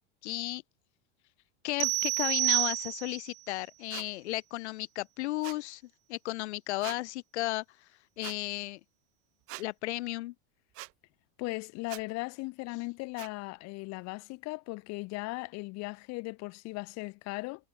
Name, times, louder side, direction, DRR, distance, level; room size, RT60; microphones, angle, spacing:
voice 1, 0.2-0.6 1.6-5.8 6.1-7.6 8.2-8.8 9.6-10.3, left 18 dB, 80° left, 1.7 m, -34 dB
sound 1, 1.8-3.3, right 22 dB, 80° right, 0.5 m, -29 dB
sound 2, 3.9-4.1 5.4-5.6 6.8-7.0 8.2-8.4 9.5-9.7 10.7-10.9 11.9-12.0 13.2-13.3, right 21 dB, 45° right, 1.1 m, -43 dB
voice 2, 11.4-17.7, left 25 dB, 50° left, 2.1 m, -38 dB
supercardioid pair, 140°, 33 cm